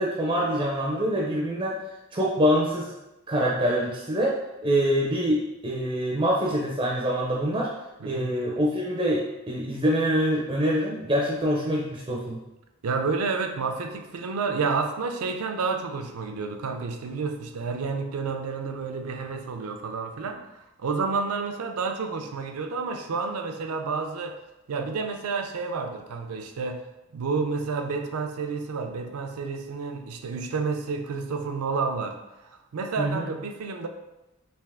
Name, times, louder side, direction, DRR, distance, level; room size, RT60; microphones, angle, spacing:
voice 1, 0.0-1.8 2.1-2.9 3.3-4.4 4.6-7.7 8.0-12.4 33.0-33.3, equal, 20° right, -2 dB, 0.4 m, -25 dB
voice 2, 8.0-8.3 12.8-24.4 24.7-26.8 27.1-32.2 32.7-33.9, right 4 dB, 90° right, 5 dB, 0.4 m, -30 dB
3.4 x 2.8 x 3.3 m, 0.94 s
head